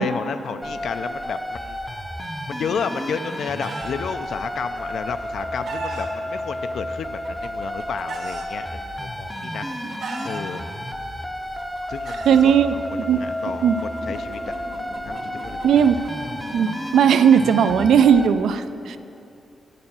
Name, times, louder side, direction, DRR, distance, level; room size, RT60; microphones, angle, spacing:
voice 1, 0.0-1.8 2.5-9.7 9.9-10.6 11.9-14.5 15.1-15.9, left 6 dB, 65° left, 9 dB, 0.3 m, -32 dB
sound 1, 0.6-18.3, equal, ahead, 0.5 m, -32 dB
Chicken rooster, 3.0-3.9 5.0-6.1 7.0-8.5 9.3-10.4 11.4-12.5 13.6-16.9, right 3 dB, 65° right, 1.1 m, -36 dB
sound 2, 11.1-16.4, left 1 dB, 80° left, 1.6 m, -45 dB
voice 2, 12.3-13.2 13.6-13.8 15.6-16.0 16.5-19.0, right 7 dB, 85° right, 12 dB, 0.4 m, -17 dB
8.6 x 6.7 x 7.1 m, 2.8 s
wide cardioid pair, 175°, 0 cm